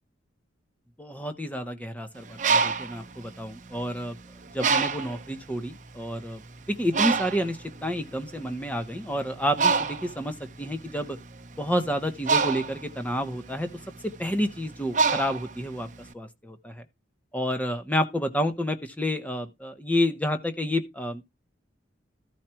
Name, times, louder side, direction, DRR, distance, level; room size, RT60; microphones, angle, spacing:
voice 1, 1.0-4.2 4.5-6.4 6.7-11.2 11.6-13.7 14.2-15.9 16.1-16.8 17.3-21.2, equal, 10° left, 1.2 m, -29 dB
Bird, 2.2-4.0 4.6-5.3 5.9-6.1 6.3-16.1, right 5 dB, 40° right, 0.9 m, -27 dB
14.0 x 5.0 x 4.5 m
head